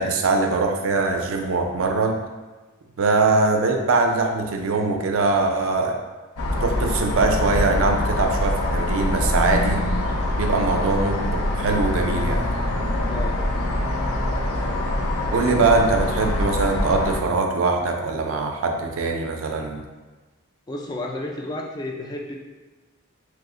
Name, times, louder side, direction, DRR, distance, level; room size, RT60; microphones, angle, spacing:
voice 1, 0.0-2.2 3.0-6.0 6.6-9.9 10.4-12.4 15.3-19.8, right 3 dB, 65° right, 3 dB, 0.4 m, -22 dB
sound 1, 6.4-17.2, left 1 dB, 90° left, 0.5 m, -24 dB
voice 2, 13.0-13.4 20.7-22.4, left 1 dB, 20° left, -1 dB, 0.3 m, -32 dB
3.0 x 2.0 x 3.6 m, 1.3 s
head